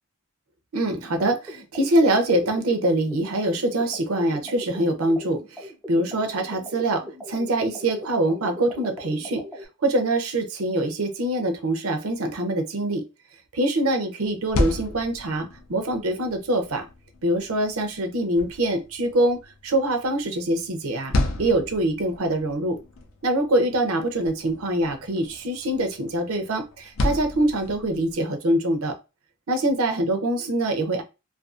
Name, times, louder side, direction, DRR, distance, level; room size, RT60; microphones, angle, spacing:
voice 1, 0.7-9.4 9.8-13.0 13.5-16.8 17.2-19.4 19.6-21.1 21.4-22.8 23.2-28.9 29.5-31.0, right 1 dB, 70° right, 5 dB, 0.6 m, -24 dB
sound 1, 0.9-9.7, left 1 dB, 5° right, 0.4 m, -40 dB
sound 2, 14.2-28.2, left 2 dB, 65° left, 0.4 m, -33 dB
2.5 x 2.3 x 2.4 m, 0.27 s
head